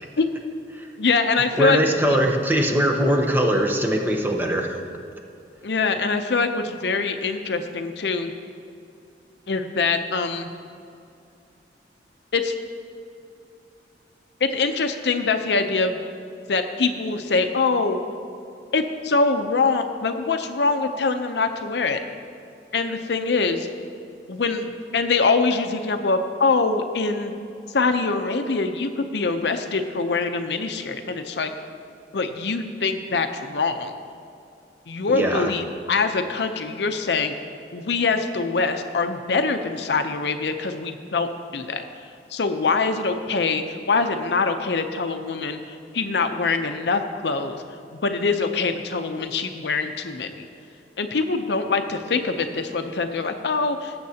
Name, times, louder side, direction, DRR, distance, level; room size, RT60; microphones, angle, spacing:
voice 1, 1.0-2.2 5.6-8.3 9.5-10.5 12.3-12.5 14.4-16.0 16.5-18.0 18.7-22.0 22.7-23.7 24.3-24.7 24.9-27.3 27.7-31.5 32.1-33.9 34.9-37.4 37.7-41.8 42.3-47.6 47.9-50.5 51.0-53.9, left 4 dB, 70° left, 7 dB, 0.6 m, -24 dB
voice 2, 1.6-4.8 35.1-35.5, right 1 dB, 10° right, 1 dB, 0.8 m, -21 dB
19.0 x 7.8 x 2.8 m, 2.5 s
head